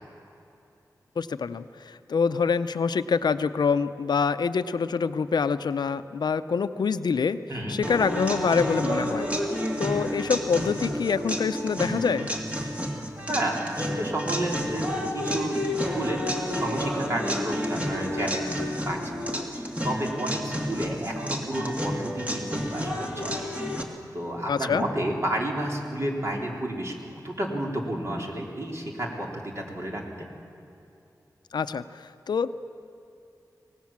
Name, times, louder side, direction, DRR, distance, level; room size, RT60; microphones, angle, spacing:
voice 1, 1.2-7.4 7.7-9.3 9.8-12.3 24.5-24.8 31.5-32.5, left 5 dB, 90° left, 12 dB, 0.6 m, -26 dB
sound 1, 7.8-23.8, equal, 20° right, 2.2 m, -30 dB
voice 2, 13.3-16.2 16.5-18.5 18.8-19.0 19.8-23.5 23.8-27.0 27.2-30.3, right 1 dB, 40° right, -1 dB, 3.7 m, -31 dB
24.5 x 18.5 x 7.3 m, 2.7 s
wide cardioid pair, 110°, 7 cm